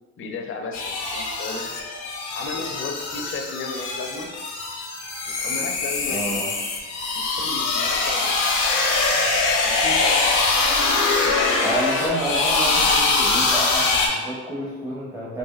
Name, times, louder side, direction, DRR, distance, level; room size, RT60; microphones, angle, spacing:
voice 1, 0.2-1.7 2.3-4.3 5.3-6.5 7.1-8.4 8.8-9.0 9.6-10.6 11.1-12.8, left 3 dB, 45° left, 3 dB, 0.5 m, -35 dB
sound 1, 0.7-14.1, left 3 dB, 85° left, 0.7 m, -23 dB
voice 2, 6.1-6.5 11.6-15.4, right 1 dB, 10° right, -7 dB, 0.7 m, -29 dB
4.0 x 2.6 x 2.4 m, 1.3 s
cardioid pair, 90°, 30 cm